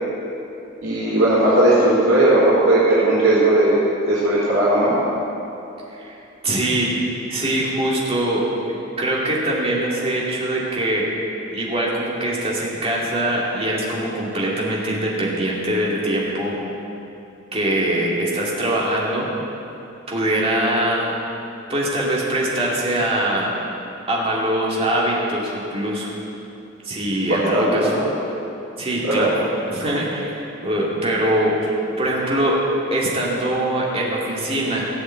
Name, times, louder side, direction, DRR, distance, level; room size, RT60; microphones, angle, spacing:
voice 1, 0.8-3.8 4.1-4.9 27.3-28.2 29.0-29.3, right 1 dB, 85° right, -8 dB, 3.9 m, -17 dB
voice 2, 6.4-6.9 7.3-8.5 9.0-11.1 11.5-16.6 17.5-19.3 20.1-21.1 21.7-23.6 24.1-26.1 26.8-27.9 28.8-32.6 32.9-34.9, right 1 dB, 30° right, -5 dB, 2.6 m, -22 dB
16.0 x 7.8 x 8.0 m, 2.8 s
head